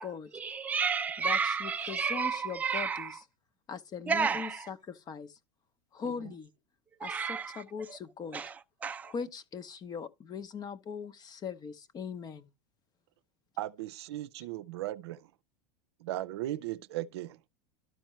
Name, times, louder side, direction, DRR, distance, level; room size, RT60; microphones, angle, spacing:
voice 1, 0.3-3.2 4.1-4.7 7.0-7.6 8.3-9.1, right 6 dB, 10° right, 0.4 m, -32 dB
voice 2, 1.2-3.2 3.7-5.4 5.9-6.5 7.0-8.4 9.0-12.5, left 6 dB, 30° left, 0.7 m, -40 dB
voice 3, 13.6-15.2 16.0-17.4, right 15 dB, 75° right, 0.6 m, -37 dB
12.5 x 4.4 x 3.0 m
supercardioid pair, 120°, 14 cm